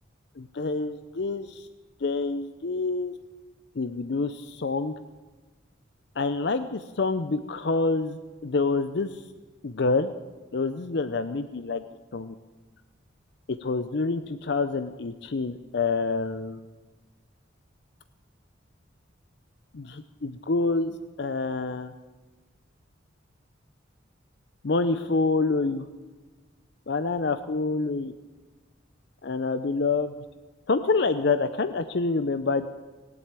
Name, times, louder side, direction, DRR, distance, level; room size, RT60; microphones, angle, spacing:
voice 1, 0.4-1.7 2.0-3.1 3.8-4.9 6.2-9.1 9.6-10.1 10.5-11.8 12.1-12.3 13.5-16.6 19.7-21.9 24.6-25.9 26.9-28.1 29.2-30.1 30.7-32.7, left 3 dB, 55° left, 11 dB, 0.5 m, -27 dB
18.5 x 7.9 x 8.9 m, 1.3 s
head